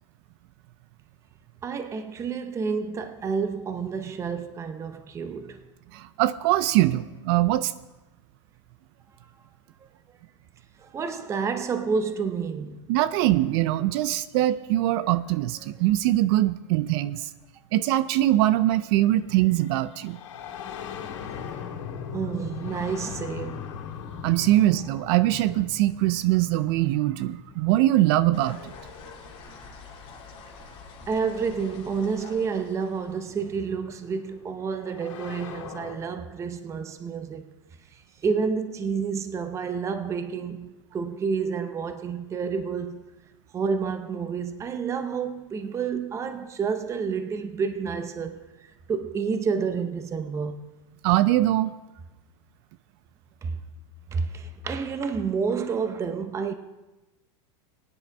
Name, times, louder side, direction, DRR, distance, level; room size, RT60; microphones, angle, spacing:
voice 1, 1.6-5.6 9.8-9.9 10.8-12.9 22.1-23.6 24.4-24.5 31.1-37.5 37.9-43.0 43.5-50.6 53.4-53.6 54.1-56.5, right 5 dB, 20° right, 0.7 m, -29 dB
voice 2, 5.9-7.7 12.9-17.3 17.7-20.2 24.2-28.7 51.0-51.7, right 15 dB, 55° right, 0.4 m, -22 dB
sound 1, 19.2-29.8 31.1-31.2 32.2-36.0, left 7 dB, 85° left, 2.2 m, -40 dB
sound 2, 28.3-33.3, left 4 dB, 35° left, 2.2 m, -46 dB
17.5 x 10.0 x 3.4 m
supercardioid pair, 135°, 16 cm